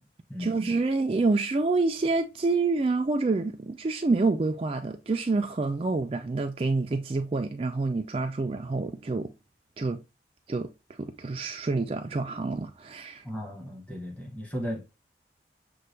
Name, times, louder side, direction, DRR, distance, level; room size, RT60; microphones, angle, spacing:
voice 1, 0.4-9.3 9.8-10.0 10.5-10.7 11.0-13.2, right 3 dB, 35° right, 0.3 m, -27 dB
voice 2, 13.2-14.8, equal, 10° left, 1.1 m, -35 dB
6.7 x 2.3 x 3.2 m
head